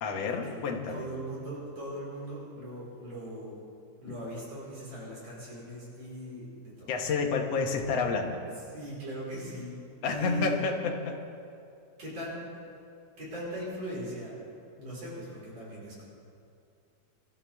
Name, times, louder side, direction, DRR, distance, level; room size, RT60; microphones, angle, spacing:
voice 1, 0.0-1.0 6.9-8.4 10.0-11.2, left 4 dB, 60° left, 2 dB, 2.1 m, -29 dB
voice 2, 0.9-3.6 4.0-6.9 8.7-9.8 10.1-10.6 12.0-12.4 13.2-14.3 14.8-16.0, right 1 dB, 50° right, -7 dB, 5.8 m, -39 dB
25.0 x 13.0 x 3.6 m, 2.5 s
omnidirectional pair, 3.8 m